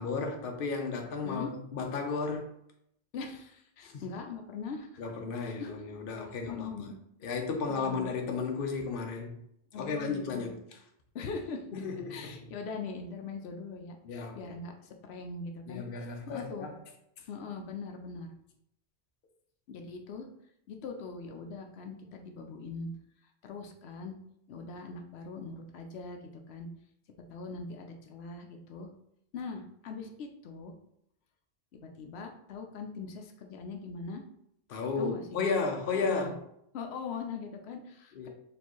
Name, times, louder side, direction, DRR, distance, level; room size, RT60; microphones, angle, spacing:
voice 1, 0.0-2.5 3.8-4.0 5.0-7.0 7.2-9.3 9.7-10.5 11.7-12.4 14.0-14.5 15.7-16.7 34.7-36.4 38.1-38.3, left 4 dB, 60° left, 3 dB, 0.8 m, -34 dB
voice 2, 3.1-5.0 5.4-5.8 6.2-6.9 7.7-8.1 9.7-10.5 11.1-11.7 12.1-16.7 17.3-18.3 19.7-20.3 20.7-22.9 23.4-24.1 24.5-26.7 27.3-28.9 29.3-30.7 31.7-34.2 35.0-35.4 35.9-36.4 36.7-38.3, left 4 dB, 90° left, 4 dB, 0.9 m, -41 dB
4.4 x 3.2 x 3.0 m, 0.74 s
omnidirectional pair, 1.1 m